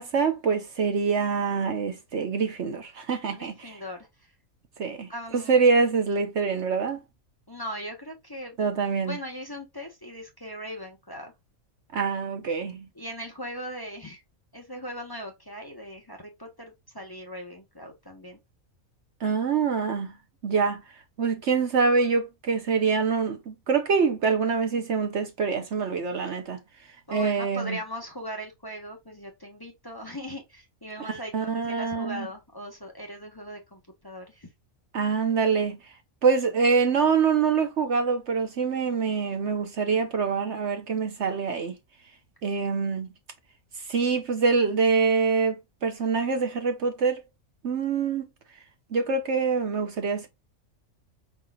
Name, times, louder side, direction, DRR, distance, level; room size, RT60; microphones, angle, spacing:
voice 1, 0.0-3.8 4.8-7.0 8.6-9.2 11.9-12.8 19.2-20.1 20.4-20.8 21.2-26.6 27.1-27.8 31.0-32.3 34.9-35.8 36.2-41.7 42.4-43.1 43.9-47.2 47.6-48.3 48.9-50.3, right 5 dB, 55° right, 1.1 m, -25 dB
voice 2, 3.3-4.1 5.1-5.6 7.5-8.6 9.0-11.3 13.0-14.2 14.5-18.4 27.1-34.5, equal, 20° left, 1.1 m, -39 dB
5.3 x 3.8 x 2.3 m
omnidirectional pair, 1.5 m